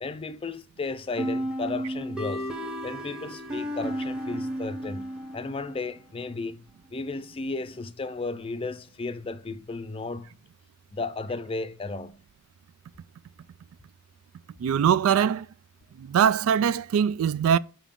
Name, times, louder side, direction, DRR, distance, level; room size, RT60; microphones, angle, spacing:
voice 1, 0.0-2.5 2.8-6.6 6.9-10.3 10.9-12.2, left 3 dB, 25° left, 0.4 m, -34 dB
sound 1, 1.2-5.8, equal, 5° right, 0.9 m, -33 dB
voice 2, 14.6-15.5 16.1-17.6, right 8 dB, 80° right, 0.3 m, -22 dB
7.2 x 4.5 x 3.6 m
head